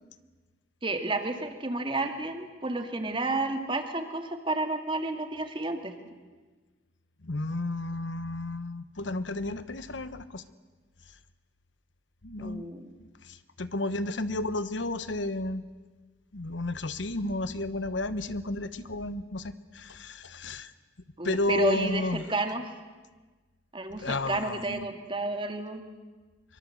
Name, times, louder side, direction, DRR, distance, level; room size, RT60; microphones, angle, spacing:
voice 1, 0.8-5.9 12.4-12.9 17.2-17.3 21.2-22.6 23.7-25.8, right 2 dB, 30° right, 5 dB, 2.2 m, -31 dB
voice 2, 7.2-10.4 12.2-12.7 13.0-15.7 16.3-20.7 21.2-22.2 23.9-24.9, left 2 dB, 85° left, 13 dB, 1.1 m, -32 dB
24.0 x 23.5 x 7.9 m, 1.3 s
head